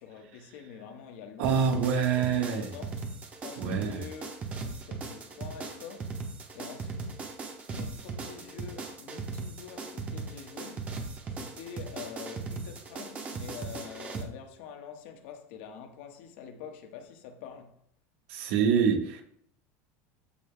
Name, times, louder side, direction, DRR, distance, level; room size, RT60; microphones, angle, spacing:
voice 1, 0.0-1.6 1.9-3.0 3.4-7.4 7.7-11.0 11.3-17.8, left 7 dB, 60° left, 1.3 m, -46 dB
sound 1, 1.4-14.2, right 4 dB, 20° right, 1.0 m, -38 dB
voice 2, 1.4-2.7 3.6-4.1 18.3-19.2, right 7 dB, 65° right, 1.5 m, -26 dB
13.5 x 5.5 x 2.3 m
cardioid pair, 175°, 7 cm